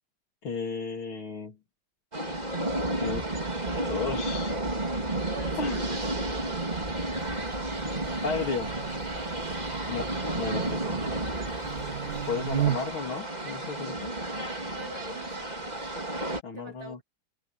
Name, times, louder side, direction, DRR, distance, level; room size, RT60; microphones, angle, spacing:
voice 1, 0.4-1.6 3.0-3.2 3.8-4.6 5.6-5.8 8.2-8.7 9.9-10.1 10.4-11.0 12.3-14.1 16.4-17.0, left 5 dB, 80° left, 3.8 m, -33 dB
sound 1, 2.1-16.4, right 1 dB, 20° right, 2.9 m, -32 dB
Buzz, 5.3-13.1, right 12 dB, 65° right, 1.2 m, -37 dB
voice 2, 5.3-6.1 9.7-10.0 14.7-15.8 16.5-17.0, right 3 dB, 85° right, 4.9 m, -44 dB
omnidirectional pair, 2.3 m